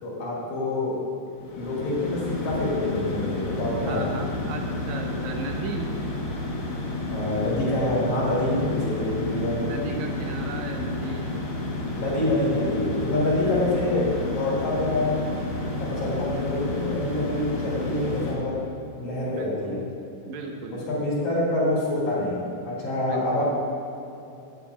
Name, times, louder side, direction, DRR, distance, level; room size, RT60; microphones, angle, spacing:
voice 1, 0.0-1.0 1.6-4.2 7.1-9.6 12.0-15.2 15.8-18.6 19.0-19.8 20.9-22.4 22.7-23.4, left 2 dB, 85° left, -7 dB, 3.5 m, -26 dB
sound 1, 1.3-18.3, left 2 dB, 55° left, 1.9 m, -31 dB
voice 2, 3.8-5.9 9.6-11.3 13.3-13.7 19.3-19.8 20.3-20.9 23.1-23.4, right 4 dB, 80° right, 2 dB, 2.2 m, -36 dB
16.0 x 7.1 x 2.3 m, 2.8 s
omnidirectional pair, 3.3 m